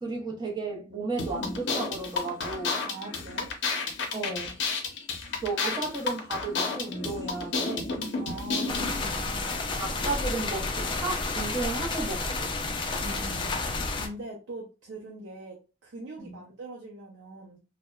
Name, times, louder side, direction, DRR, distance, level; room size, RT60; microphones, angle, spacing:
voice 1, 0.0-2.8 4.1-4.6 5.4-7.9 9.8-12.5 16.2-16.3, right 3 dB, 25° right, 0.7 m, -34 dB
sound 1, 1.2-9.0, left 4 dB, 75° left, 0.6 m, -31 dB
voice 2, 2.9-3.5 8.2-9.6 13.0-17.6, right 2 dB, 85° right, 0.5 m, -42 dB
sound 2, 8.7-14.1, left 3 dB, 25° left, 0.3 m, -31 dB
2.7 x 2.1 x 2.3 m
head